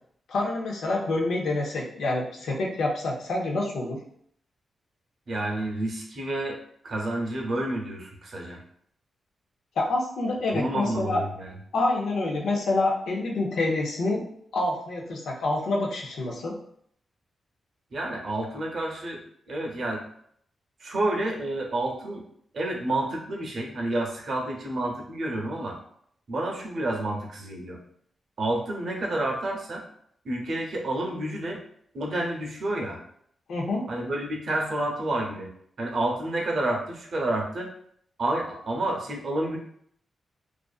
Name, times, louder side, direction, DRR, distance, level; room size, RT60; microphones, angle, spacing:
voice 1, 0.3-4.0 9.8-11.2 11.7-14.2 14.5-16.6 33.5-33.8, left 2 dB, 85° left, -1 dB, 0.6 m, -27 dB
voice 2, 5.3-6.6 6.8-8.6 10.5-11.5 17.9-19.2 19.5-20.0 20.8-22.2 22.5-25.8 26.3-27.8 28.4-29.8 30.2-31.6 31.9-33.0 33.9-35.5 35.8-37.7 38.2-39.6, right 1 dB, 60° right, 0 dB, 0.6 m, -29 dB
2.5 x 2.4 x 2.3 m, 0.66 s
cardioid pair, 90°, 0 cm